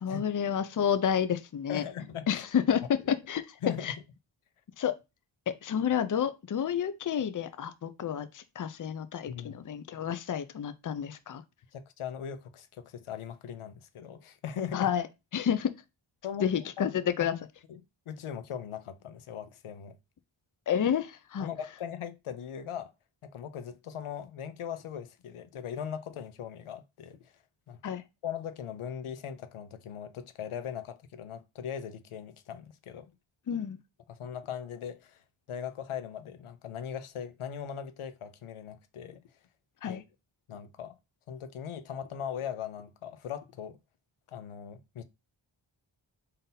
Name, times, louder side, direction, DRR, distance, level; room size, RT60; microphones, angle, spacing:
voice 1, 0.0-1.8 2.3-3.6 3.8-3.9 4.8-4.9 5.5-11.4 14.7-15.1 15.3-15.7 16.4-17.4 20.7-21.5 27.8-28.0 33.5-33.8 39.8-40.0, left 8 dB, 40° left, 0.5 m, -30 dB
voice 2, 1.7-2.4 3.6-3.9 7.2-7.3 9.3-9.6 11.7-14.9 16.2-16.5 16.8-16.9 17.3-17.4 17.7-17.8 18.1-20.0 21.4-22.9 23.2-27.4 27.7-27.8 28.2-33.1 34.1-35.2 35.5-39.2 39.8-40.0 40.5-41.0 41.3-43.8 44.3-45.0, left 8 dB, 85° left, 0.6 m, -39 dB
3.8 x 2.7 x 3.9 m
wide cardioid pair, 60°, 49 cm